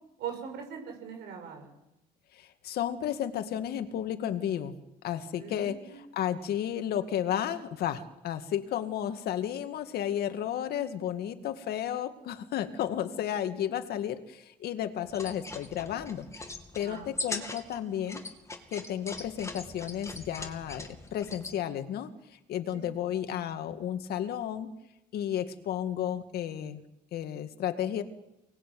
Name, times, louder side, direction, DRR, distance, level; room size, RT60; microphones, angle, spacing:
voice 1, 0.2-1.7 5.4-6.1 16.8-17.1 22.7-22.9, right 7 dB, 75° right, 4 dB, 6.8 m, -41 dB
voice 2, 2.3-4.8 5.0-5.8 6.1-18.2 18.7-22.1 22.5-24.7 25.1-26.8 27.1-28.0, left 10 dB, 70° left, 9 dB, 2.1 m, -33 dB
sound 1, 15.0-21.6, left 2 dB, 15° left, 2.6 m, -41 dB
24.0 x 20.0 x 9.4 m, 0.92 s
cardioid pair, 110°, 17 cm